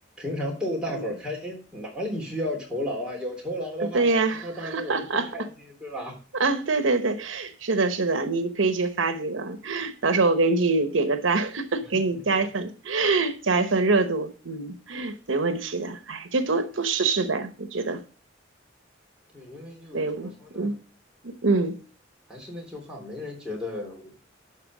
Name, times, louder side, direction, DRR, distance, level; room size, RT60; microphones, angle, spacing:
voice 1, 0.2-5.5 5.8-6.1 12.3-12.4 19.3-20.7 22.3-24.1, left 1 dB, 5° right, 3.3 m, -33 dB
voice 2, 3.8-5.3 6.4-18.0 19.9-20.8 21.2-21.8, right 3 dB, 80° right, 1.0 m, -25 dB
11.5 x 4.4 x 6.0 m
head